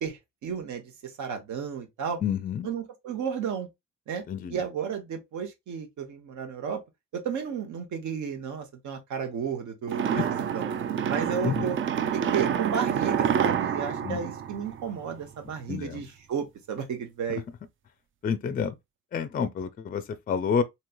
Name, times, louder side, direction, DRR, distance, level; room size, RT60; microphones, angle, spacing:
voice 1, 0.0-2.2 2.6-3.7 4.1-4.2 4.5-6.8 7.1-10.1 10.5-10.6 11.1-11.8 12.1-17.4, right 7 dB, 70° right, 1.0 m, -33 dB
voice 2, 2.2-2.7 4.3-4.6 10.1-10.3 11.4-11.7 14.0-14.2 15.7-16.0 17.3-17.4 18.2-18.8 19.1-20.6, left 7 dB, 30° left, 0.4 m, -29 dB
sound 1, 9.9-15.2, right 8 dB, 45° right, 0.4 m, -28 dB
3.1 x 2.8 x 2.2 m
cardioid pair, 90°, 30 cm